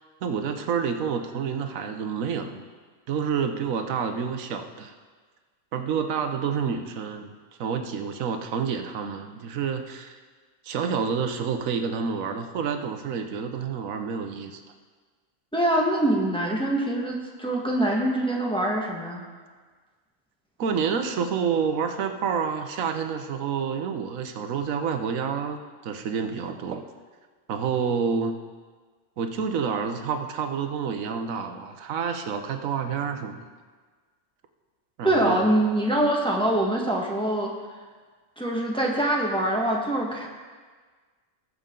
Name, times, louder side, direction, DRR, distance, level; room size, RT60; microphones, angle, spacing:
voice 1, 0.2-2.6 3.1-4.9 5.7-7.3 7.6-10.2 10.6-14.6 20.6-26.8 27.5-28.4 29.2-33.5 35.0-35.4, right 6 dB, 90° right, 7 dB, 1.2 m, -28 dB
voice 2, 15.5-19.2 35.0-37.5 38.4-40.3, right 1 dB, 5° left, -2 dB, 1.4 m, -24 dB
19.5 x 6.6 x 3.8 m, 1.5 s
omnidirectional pair, 1.4 m